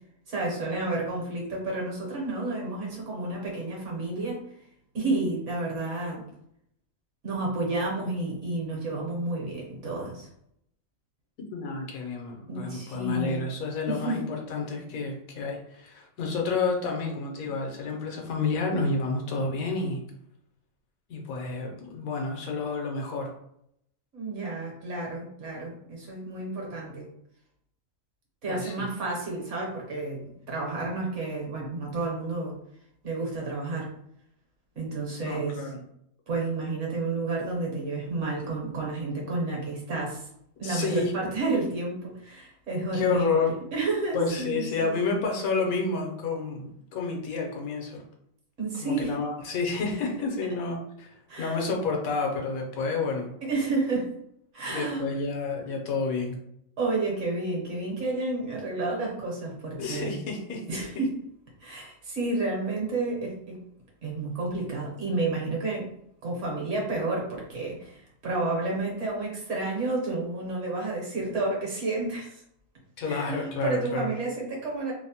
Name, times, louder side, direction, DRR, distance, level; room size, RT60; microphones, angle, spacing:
voice 1, 0.3-4.4 4.9-6.2 7.2-10.3 12.5-13.5 13.9-14.2 24.1-27.1 28.4-32.5 33.0-33.9 34.7-35.6 36.3-40.3 40.6-44.9 48.6-49.1 51.3-51.6 53.4-54.1 54.5-55.1 56.8-60.1 60.7-61.2 61.6-63.6 64.0-65.9 66.2-72.4 73.0-74.9, right 2 dB, 65° right, -2 dB, 1.1 m, -31 dB
voice 2, 11.5-20.0 21.1-23.3 28.5-28.8 35.2-35.8 40.6-41.1 42.9-43.5 44.1-48.0 48.8-53.3 54.7-56.4 59.8-60.9 73.0-74.1, left 4 dB, 80° left, 0 dB, 1.1 m, -30 dB
2.9 x 2.0 x 2.7 m, 0.73 s
omnidirectional pair, 1.5 m